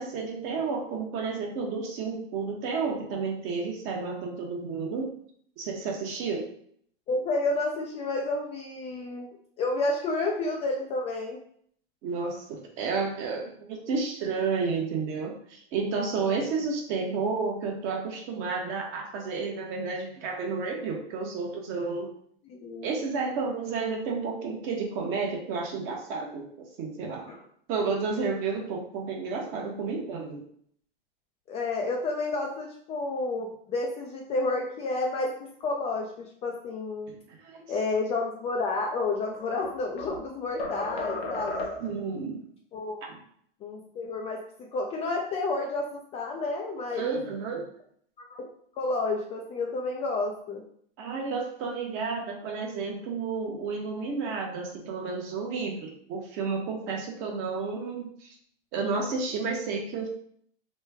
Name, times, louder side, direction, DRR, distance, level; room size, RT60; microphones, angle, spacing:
voice 1, 0.0-5.1 5.6-6.5 12.0-22.1 22.8-27.2 27.7-30.4 37.3-37.6 41.8-42.4 43.0-43.1 46.9-47.7 51.0-58.3 58.7-60.1, right 4 dB, 40° right, 1 dB, 0.9 m, -31 dB
voice 2, 7.1-9.3 9.6-11.4 22.5-22.9 27.3-27.4 31.5-35.3 35.6-37.1 37.7-41.7 42.7-43.0 43.6-44.4 44.7-47.2 48.2-48.5 48.8-50.6, left 3 dB, 20° left, 0 dB, 0.3 m, -30 dB
sound 1, 38.9-40.2 40.6-42.0, left 2 dB, 90° left, 0.9 m, -34 dB
3.1 x 2.2 x 3.4 m, 0.63 s
hypercardioid pair, 120°, 30 cm